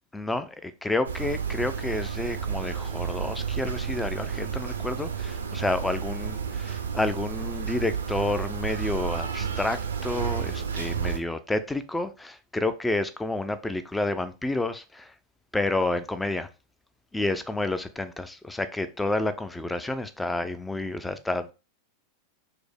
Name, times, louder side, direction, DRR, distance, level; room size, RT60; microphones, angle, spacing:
voice 1, 0.1-15.1 15.5-16.5 17.1-21.5, left 2 dB, 5° left, 0.4 m, -30 dB
sound 1, 1.0-11.2, right 7 dB, 70° right, 0.5 m, -31 dB
4.7 x 2.0 x 3.3 m
figure-of-eight pair, 90°, 0 cm